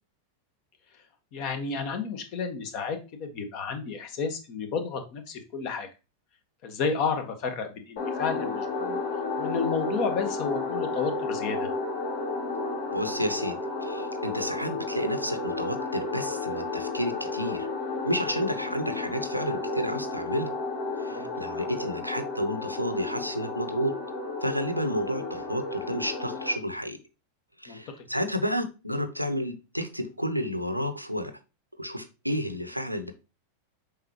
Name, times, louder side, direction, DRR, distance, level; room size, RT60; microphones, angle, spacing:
voice 1, 1.3-5.9 6.6-9.0 9.4-11.7 21.1-21.6 27.7-28.0, left 5 dB, 45° left, 7 dB, 1.4 m, -32 dB
sound 1, 8.0-26.5, left 3 dB, 60° left, 2.2 m, -32 dB
voice 2, 12.9-17.7 18.0-20.5 21.0-23.9 24.4-27.0 27.6-31.3 31.8-33.1, equal, 90° right, 9 dB, 0.8 m, -31 dB
7.3 x 5.0 x 3.0 m, 0.30 s
figure-of-eight pair, 90°, 0 cm